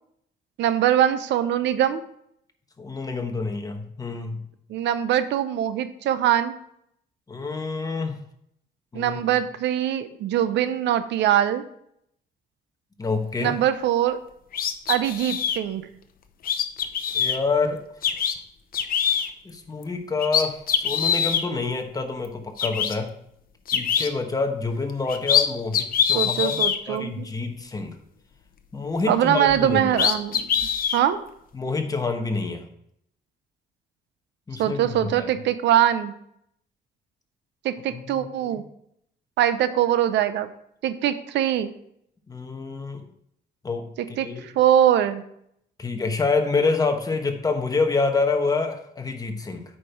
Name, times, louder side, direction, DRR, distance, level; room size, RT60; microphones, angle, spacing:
voice 1, 0.6-2.0 4.7-6.5 8.9-11.6 13.4-14.2 14.9-15.9 26.1-27.2 29.1-30.5 30.9-31.2 34.6-36.1 37.6-38.6 39.4-40.5 40.8-41.7 44.0-45.2, right 11 dB, 85° right, 12 dB, 0.6 m, -22 dB
voice 2, 2.8-4.4 7.3-8.2 8.9-9.2 13.0-13.5 17.1-17.8 19.4-23.1 23.7-26.6 26.9-27.9 28.7-29.9 31.5-32.6 34.5-35.3 37.9-38.6 42.3-43.0 43.6-44.4 45.8-49.6, left 4 dB, 20° left, 5 dB, 1.1 m, -27 dB
sound 1, 14.5-15.6 16.4-17.4 18.0-18.3 18.7-19.3 19.8-19.9 20.2-21.4 22.2-22.3 22.6-22.9 23.7-24.1 24.9-25.4 25.7-26.8 29.5-29.6 29.9-31.0, left 8 dB, 55° left, 0.8 m, -23 dB
8.7 x 5.3 x 4.5 m, 0.73 s
cardioid pair, 125°, 18 cm